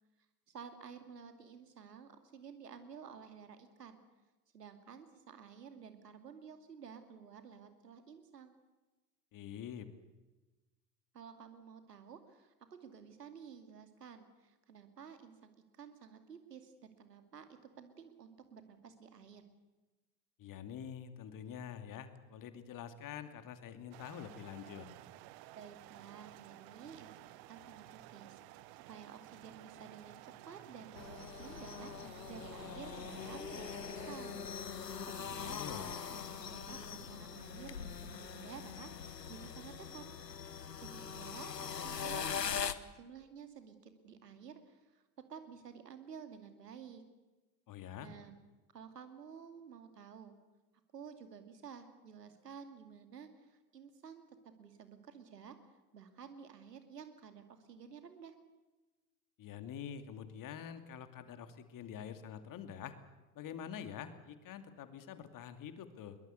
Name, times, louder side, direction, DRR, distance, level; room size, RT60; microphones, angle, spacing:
voice 1, 0.5-4.0 4.5-8.5 11.1-19.4 25.5-28.4 28.9-34.5 35.0-40.0 40.8-45.0 45.3-47.0 48.0-48.3 48.7-50.4 50.9-54.3 54.6-55.6 55.9-58.3, right 7 dB, 80° right, 8 dB, 2.6 m, -52 dB
voice 2, 9.3-9.9 20.4-24.9 35.4-35.9 47.7-48.1 59.4-63.0 63.3-66.2, left 8 dB, 40° left, 10 dB, 2.6 m, -46 dB
sound 1, 23.9-34.2, right 16 dB, 50° right, 1.1 m, -54 dB
sound 2, 30.9-42.7, left 7 dB, 85° left, 1.0 m, -42 dB
22.0 x 21.0 x 8.3 m, 1.2 s
figure-of-eight pair, 70°, 47 cm